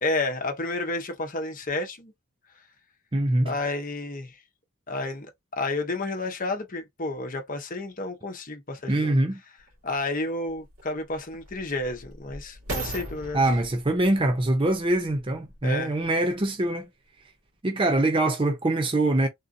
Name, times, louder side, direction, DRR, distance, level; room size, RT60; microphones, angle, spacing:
voice 1, 0.0-2.1 3.4-4.4 4.9-5.3 5.5-9.1 9.8-13.4 15.6-16.0, left 2 dB, 40° left, 0.9 m, -31 dB
voice 2, 3.1-3.5 8.9-9.4 13.3-16.9 17.6-19.3, right 1 dB, 25° right, 0.5 m, -23 dB
sound 1, 9.7-9.8 10.5-15.8 16.4-16.5, right 2 dB, 85° right, 1.8 m, -39 dB
3.7 x 2.5 x 2.5 m
head